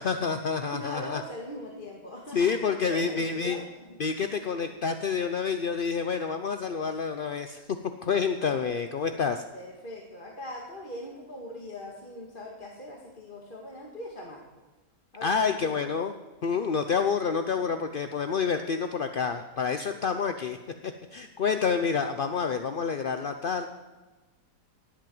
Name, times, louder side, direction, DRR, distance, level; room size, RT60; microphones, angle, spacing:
voice 1, 0.0-1.2 2.3-3.6 4.0-7.6 8.0-9.4 15.2-16.1 16.4-20.6 20.8-23.7, left 5 dB, 55° left, 8 dB, 0.5 m, -28 dB
voice 2, 0.6-3.6 3.9-4.0 9.5-14.4 15.1-15.8, left 1 dB, 30° left, -1 dB, 2.0 m, -41 dB
18.0 x 8.6 x 7.8 m, 1.2 s
omnidirectional pair, 1.8 m